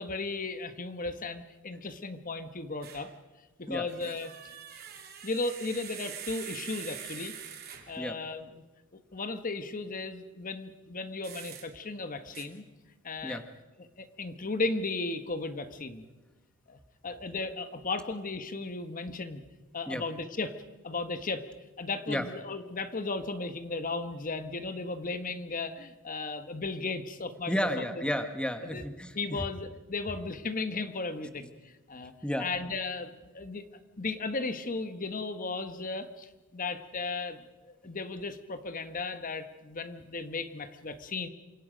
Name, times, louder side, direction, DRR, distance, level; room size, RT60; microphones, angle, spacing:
voice 1, 0.0-3.1 3.6-4.5 5.2-7.3 7.9-8.6 8.9-12.6 13.0-13.4 13.8-16.0 16.7-16.8 17.0-19.4 19.7-20.5 20.8-21.5 21.8-27.9 28.6-28.8 29.1-31.5 31.9-32.1 32.4-33.6 34.0-37.4 37.7-41.3, left 3 dB, 40° left, 9 dB, 1.2 m, -35 dB
sound 1, 2.8-3.1 3.8-8.1 11.2-11.7 12.3-12.4, right 8 dB, 45° right, 3.2 m, -44 dB
voice 2, 27.5-29.5 32.2-32.5, equal, 5° left, 8 dB, 1.2 m, -32 dB
28.0 x 25.5 x 5.2 m, 1.2 s
head